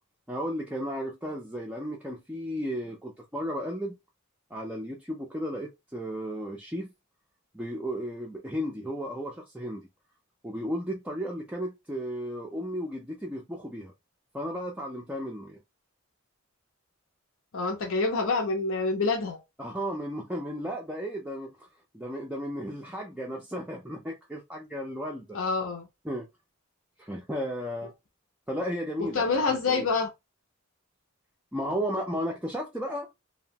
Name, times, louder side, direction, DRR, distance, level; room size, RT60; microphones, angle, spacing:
voice 1, 0.3-3.9 4.5-6.9 7.5-9.9 10.4-13.9 14.3-15.6 19.6-21.7 21.9-25.4 26.0-26.3 27.0-27.9 28.5-29.4 29.7-29.8 31.5-33.2, equal, 5° right, 0.3 m, -34 dB
voice 2, 17.5-19.4 25.3-25.9 29.0-30.1, left 4 dB, 65° left, 0.6 m, -27 dB
2.7 x 2.2 x 2.7 m
head